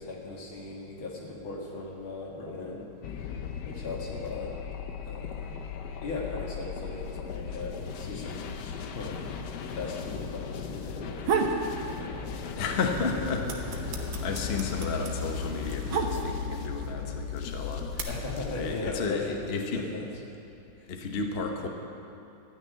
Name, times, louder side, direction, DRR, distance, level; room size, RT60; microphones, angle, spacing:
voice 1, 0.0-2.9 3.7-4.5 5.1-5.6 6.0-9.2 9.8-12.2 12.6-13.4 18.1-20.1 20.8-20.9, left 3 dB, 80° left, -2 dB, 2.7 m, -38 dB
sound 1, 3.0-19.0, left 6 dB, 65° left, 1.2 m, -38 dB
sound 2, 11.0-11.6 12.0-12.7 13.0-16.6 17.4-18.0, right 6 dB, 85° right, 1.9 m, -30 dB
sound 3, 12.5-18.7, left 4 dB, 40° right, 3.0 m, -39 dB
voice 2, 12.6-18.1 18.5-19.8 20.9-21.7, left 4 dB, 40° left, 3 dB, 0.9 m, -33 dB
13.0 x 6.3 x 9.3 m, 2.8 s
omnidirectional pair, 2.2 m